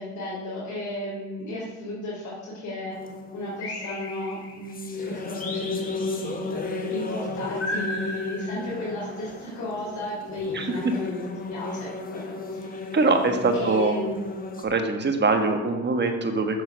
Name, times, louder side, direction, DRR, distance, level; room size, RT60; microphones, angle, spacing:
voice 1, 0.0-3.0 3.3-12.2 12.5-12.8 13.5-14.3, equal, 75° left, -8 dB, 3.0 m, -34 dB
sound 1, 2.9-14.6, left 3 dB, 30° left, 1.3 m, -34 dB
sound 2, 3.6-4.7 5.4-6.5 7.6-9.1, left 1 dB, 50° left, 2.8 m, -35 dB
voice 2, 10.5-10.9 12.9-13.9 14.6-16.6, right 3 dB, 35° right, 5 dB, 1.4 m, -23 dB
6.8 x 6.6 x 6.4 m, 1.3 s
cardioid pair, 90°, 30 cm